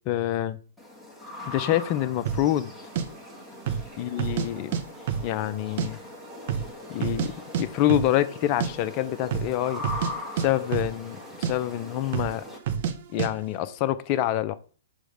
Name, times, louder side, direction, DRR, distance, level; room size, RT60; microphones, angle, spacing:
voice 1, 0.1-0.6 1.5-2.7 4.0-4.7 5.2-6.0 6.9-7.3 7.6-9.8 10.4-12.4 13.1-14.6, left 13 dB, 40° left, 0.5 m, -26 dB
sound 1, 0.8-12.6, left 2 dB, ahead, 1.4 m, -41 dB
sound 2, 2.3-2.5 3.0-3.1 3.6-3.9 4.2-4.8 5.1-5.9 6.1-6.2 6.5-7.3 7.5-7.6 7.9-8.1 8.4-8.7 9.2-9.5 9.8-11.2 11.4-11.5 12.1-12.4 12.7-12.9 13.2-13.3, right 8 dB, 50° right, 0.8 m, -28 dB
6.3 x 3.1 x 5.0 m
hypercardioid pair, 120°, 0 cm